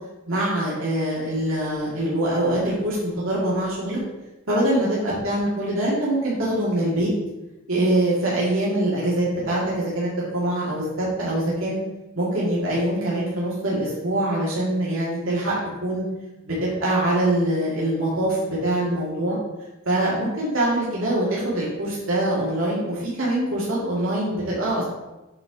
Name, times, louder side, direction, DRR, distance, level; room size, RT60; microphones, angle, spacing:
voice 1, 0.3-4.0 4.5-7.1 7.7-11.8 12.2-16.1 16.4-19.4 19.9-24.8, right 1 dB, 80° right, -7 dB, 2.2 m, -24 dB
7.7 x 4.4 x 5.0 m, 1.0 s
head